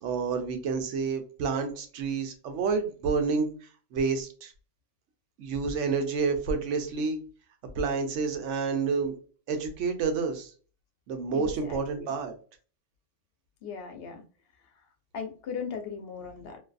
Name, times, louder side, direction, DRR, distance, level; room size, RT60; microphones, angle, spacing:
voice 1, 0.0-4.5 5.4-7.2 7.7-9.1 9.5-10.5 11.1-12.3, right 5 dB, 80° right, 6 dB, 1.0 m, -29 dB
voice 2, 11.3-12.1 13.6-14.2 15.1-16.6, left 6 dB, 60° left, 5 dB, 0.8 m, -38 dB
2.6 x 2.4 x 2.2 m, 0.39 s
omnidirectional pair, 1.2 m